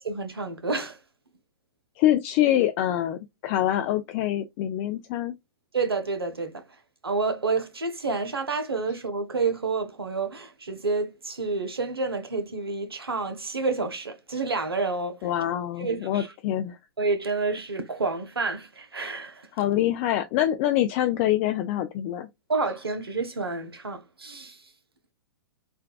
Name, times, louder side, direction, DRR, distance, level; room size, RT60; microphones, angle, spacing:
voice 1, 0.0-1.0 5.7-6.6 7.0-15.3 15.8-16.3 17.0-19.5 22.5-24.6, right 3 dB, 90° right, 0.7 m, -29 dB
voice 2, 2.0-5.4 15.2-16.8 19.6-22.3, left 12 dB, 35° left, 0.3 m, -25 dB
3.5 x 2.2 x 2.2 m
hypercardioid pair, 115°, 12 cm